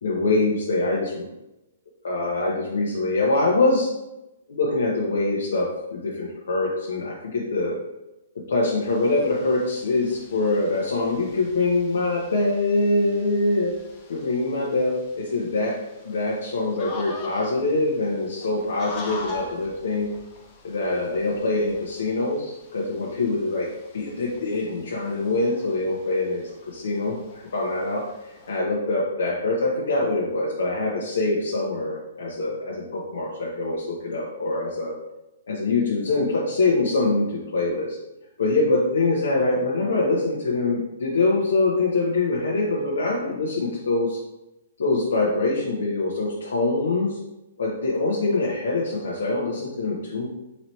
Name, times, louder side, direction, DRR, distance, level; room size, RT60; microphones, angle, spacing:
voice 1, 0.0-1.3 2.0-3.9 4.5-7.8 8.5-13.7 14.1-15.7 16.0-20.1 20.6-28.0 28.5-34.9 35.5-38.0 38.4-44.2 44.8-47.2 47.6-50.3, left 2 dB, 75° left, -5 dB, 0.8 m, -24 dB
sound 1, 8.8-28.6, left 3 dB, 20° left, 0.4 m, -44 dB
4.1 x 2.9 x 3.1 m, 0.96 s
hypercardioid pair, 180°, 0 cm